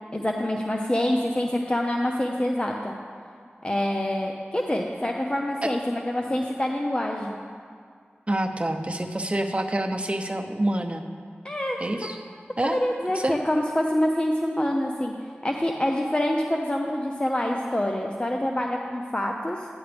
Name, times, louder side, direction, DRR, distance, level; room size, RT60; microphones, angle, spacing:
voice 1, 0.1-2.9 3.6-7.4 11.4-11.8 12.6-15.1 15.4-19.7, left 1 dB, 25° left, 1 dB, 0.8 m, -26 dB
voice 2, 8.3-11.0 11.8-12.2 12.6-12.8 13.1-13.4, right 1 dB, 30° right, 4 dB, 0.8 m, -27 dB
13.5 x 10.0 x 3.5 m, 2.1 s
wide cardioid pair, 45°, 4 cm